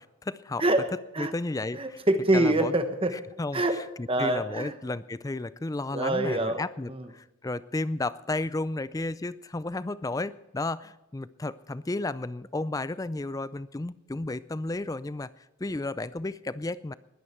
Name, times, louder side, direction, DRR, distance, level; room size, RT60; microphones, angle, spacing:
voice 1, 0.0-0.6 1.2-2.0 2.3-2.7 3.4-16.9, left 2 dB, 15° left, 16 dB, 0.4 m, -33 dB
voice 2, 0.6-1.3 1.7-3.2 3.5-4.7 5.9-6.6 6.9-7.1, right 1 dB, 25° right, 8 dB, 1.1 m, -26 dB
20.5 x 10.0 x 4.4 m, 1.0 s
head